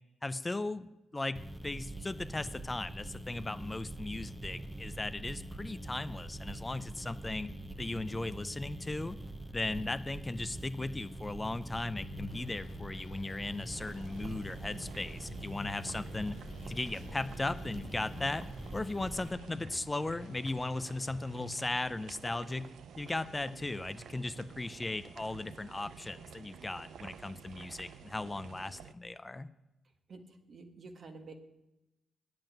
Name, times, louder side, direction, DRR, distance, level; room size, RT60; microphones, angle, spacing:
voice 1, 0.2-7.5 7.8-9.2 9.5-16.4 16.7-18.5 18.7-22.7 23.0-29.5, left 2 dB, 20° left, 12 dB, 0.5 m, -37 dB
sound 1, 1.4-19.3, right 1 dB, 10° right, 0.9 m, -44 dB
sound 2, 11.7-21.7, left 6 dB, 85° left, 1.0 m, -52 dB
sound 3, 13.7-28.9, right 7 dB, 80° right, 0.5 m, -51 dB
voice 2, 30.1-31.3, right 3 dB, 60° right, 5 dB, 1.6 m, -50 dB
9.0 x 7.7 x 8.9 m, 0.95 s
cardioid pair, 65°, 0 cm